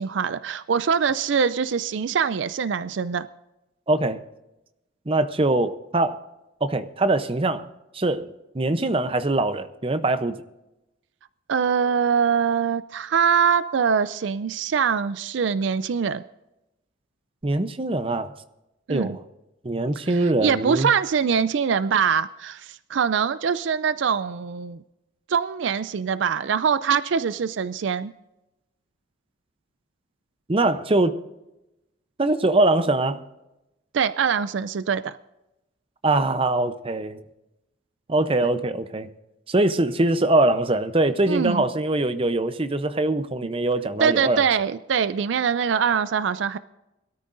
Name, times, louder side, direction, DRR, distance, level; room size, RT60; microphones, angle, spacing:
voice 1, 0.0-3.3 11.5-16.2 18.9-19.2 20.1-24.8 25.3-28.1 33.9-35.2 41.3-41.6 44.0-46.6, right 6 dB, 65° right, 0.4 m, -23 dB
voice 2, 3.9-4.2 5.1-6.2 6.6-7.7 7.9-8.3 8.5-10.4 17.4-18.3 18.9-19.2 19.6-20.9 30.5-31.2 32.2-33.2 36.0-37.2 38.1-39.1 39.5-44.4, right 2 dB, 30° right, 0.7 m, -22 dB
22.0 x 13.5 x 2.6 m
head